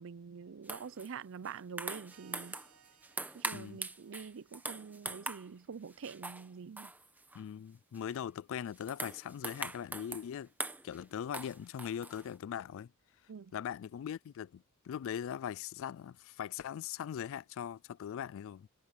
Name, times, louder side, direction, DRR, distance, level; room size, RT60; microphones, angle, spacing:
voice 1, 0.0-2.6 3.3-6.9 13.3-13.5, right 6 dB, 60° right, 0.5 m, -46 dB
sound 1, 0.6-1.1 1.4-2.8 3.0-5.5 5.9-6.5 6.8-7.4 7.9-8.2 8.6-10.3 10.6-11.0 11.3-12.3, right 2 dB, 10° right, 1.1 m, -42 dB
sound 2, 2.1-5.5, right 8 dB, 85° right, 2.9 m, -66 dB
voice 2, 7.3-10.5 10.8-12.9 13.5-18.7, left 9 dB, 65° left, 0.3 m, -40 dB
head